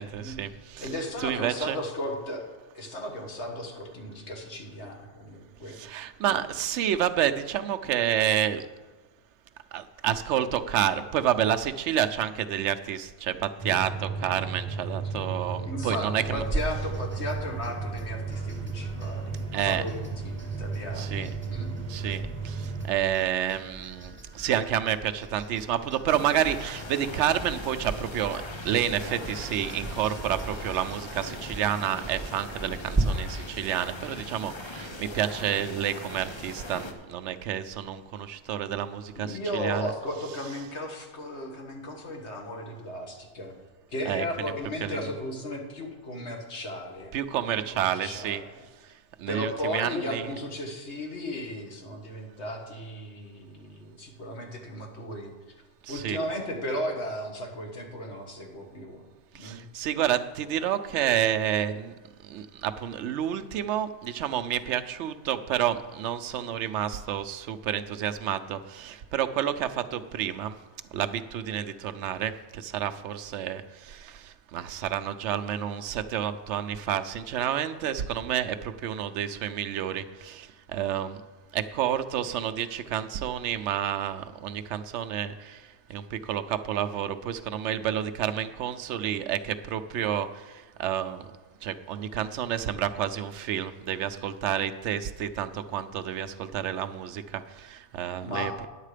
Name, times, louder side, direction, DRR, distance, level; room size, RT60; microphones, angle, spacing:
voice 1, 0.0-0.9 1.2-1.8 5.7-8.7 9.7-16.4 19.5-19.8 20.9-21.3 21.9-39.9 44.1-44.2 44.8-45.0 47.1-48.4 48.8-50.3 55.8-56.2 59.3-61.9 62.2-70.6 70.9-81.2 81.5-91.3 91.6-98.5, right 10 dB, 80° right, 9 dB, 0.9 m, -29 dB
voice 2, 0.8-2.5 2.7-5.8 6.2-6.4 15.7-21.7 39.1-43.5 43.9-47.1 47.7-48.5 49.3-55.3 55.9-59.0 59.4-59.6 98.0-98.7, left 1 dB, 70° left, 2 dB, 1.8 m, -35 dB
sound 1, 13.6-22.9, right 4 dB, 35° right, 1.1 m, -34 dB
sound 2, 16.4-33.0, right 2 dB, 10° right, 1.1 m, -38 dB
sound 3, 26.1-36.9, left 2 dB, 30° left, 0.7 m, -40 dB
10.0 x 7.4 x 5.0 m, 1.2 s
omnidirectional pair, 1.2 m